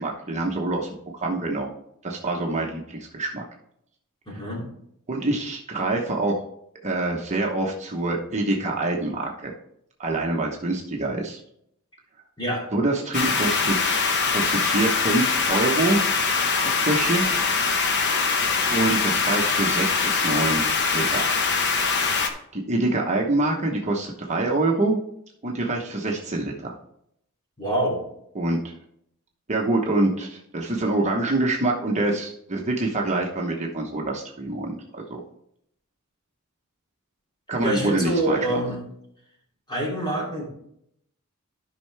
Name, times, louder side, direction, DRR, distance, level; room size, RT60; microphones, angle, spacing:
voice 1, 0.0-1.7 2.0-3.4 5.1-6.4 6.8-9.5 10.0-11.4 12.7-16.0 16.6-17.3 18.7-20.6 20.9-21.3 22.5-25.0 25.4-26.7 28.3-28.7 29.5-35.2 37.5-38.6, right 2 dB, 30° right, 0 dB, 1.0 m, -25 dB
voice 2, 4.3-4.6 12.4-12.6 27.6-28.0 37.6-38.8 39.7-40.5, right 1 dB, 20° left, -3 dB, 2.9 m, -26 dB
sound 1, 13.1-22.3, left 4 dB, 55° left, 1.0 m, -23 dB
12.5 x 5.6 x 3.4 m, 0.73 s
head